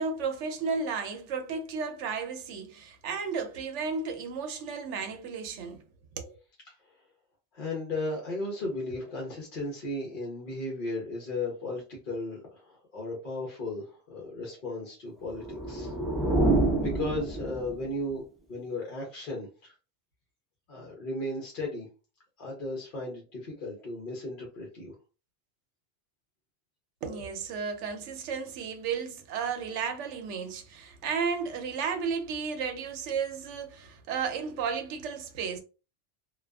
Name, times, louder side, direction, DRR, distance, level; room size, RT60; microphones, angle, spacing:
voice 1, 0.0-5.8 6.2-6.3 27.0-35.6, right 5 dB, 80° right, 0.9 m, -33 dB
voice 2, 7.5-15.9 16.8-18.2 18.5-19.7 20.7-21.9 22.4-24.9, left 2 dB, 50° left, 0.8 m, -35 dB
sound 1, 15.3-18.0, right 2 dB, ahead, 0.4 m, -27 dB
2.4 x 2.3 x 2.3 m
omnidirectional pair, 1.2 m